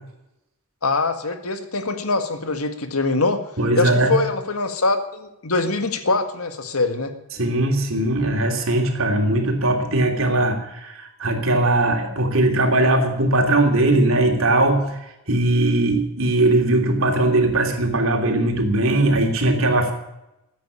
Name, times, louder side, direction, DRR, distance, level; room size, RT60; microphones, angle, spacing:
voice 1, 0.8-3.4 3.8-7.1, left 3 dB, 85° left, 8 dB, 1.8 m, -23 dB
voice 2, 3.6-4.1 7.3-15.0 15.3-19.9, right 2 dB, 70° right, 3 dB, 3.1 m, -19 dB
15.0 x 9.4 x 9.9 m, 0.90 s
head